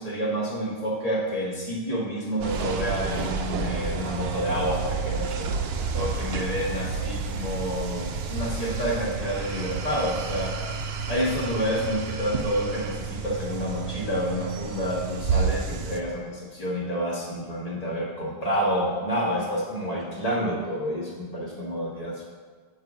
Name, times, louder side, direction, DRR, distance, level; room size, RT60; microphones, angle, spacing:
voice 1, 0.0-10.6 11.1-22.2, equal, 35° left, -4 dB, 1.6 m, -29 dB
sound 1, 2.4-16.0, right 5 dB, 70° right, 0.8 m, -30 dB
6.5 x 5.6 x 4.9 m, 1.5 s
omnidirectional pair, 1.1 m